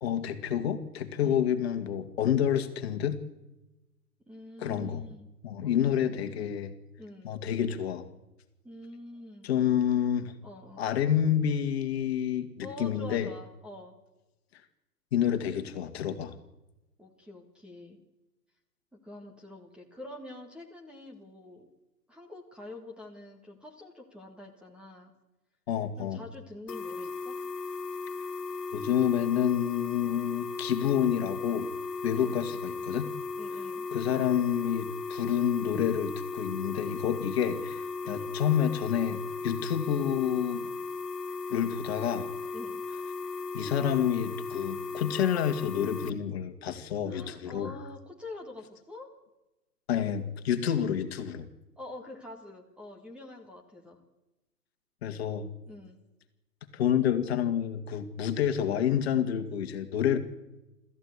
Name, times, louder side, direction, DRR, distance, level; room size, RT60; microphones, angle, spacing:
voice 1, 0.0-3.2 4.6-5.1 5.4-6.7 7.2-8.0 9.4-10.3 10.8-13.3 15.1-16.4 25.7-26.2 28.7-31.7 32.0-33.1 33.9-40.7 41.5-42.3 43.5-47.8 49.9-51.5 55.0-55.5 56.7-60.2, left 9 dB, 40° left, 7 dB, 2.1 m, -28 dB
voice 2, 4.3-5.3 5.6-6.4 7.0-7.3 8.6-9.5 10.4-10.9 12.6-14.0 17.0-18.0 19.0-21.6 22.1-25.1 26.0-27.4 32.1-32.4 33.4-33.8 38.0-38.3 42.5-42.8 47.1-49.1 51.8-54.0 55.7-56.0, left 2 dB, ahead, 1 dB, 1.7 m, -46 dB
sound 1, 26.7-46.1, left 4 dB, 75° left, 1.5 m, -36 dB
26.0 x 14.5 x 8.3 m, 1.0 s
figure-of-eight pair, 130°, 48 cm